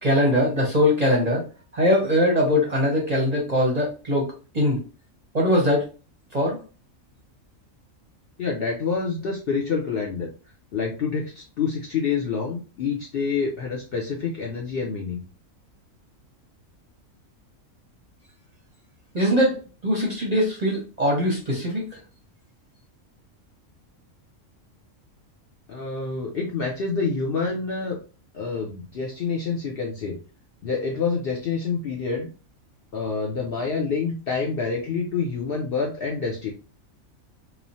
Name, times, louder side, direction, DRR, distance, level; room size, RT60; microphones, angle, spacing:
voice 1, 0.0-1.4 1.7-4.8 5.3-5.8 6.3-6.6 19.1-21.8, left 1 dB, 40° right, -1 dB, 0.6 m, -21 dB
voice 2, 8.4-10.3 10.7-15.2 25.7-28.0 28.3-30.2 30.6-32.3 32.9-36.5, left 5 dB, 60° left, 0 dB, 0.6 m, -27 dB
3.0 x 2.0 x 2.6 m, 0.34 s
omnidirectional pair, 1.4 m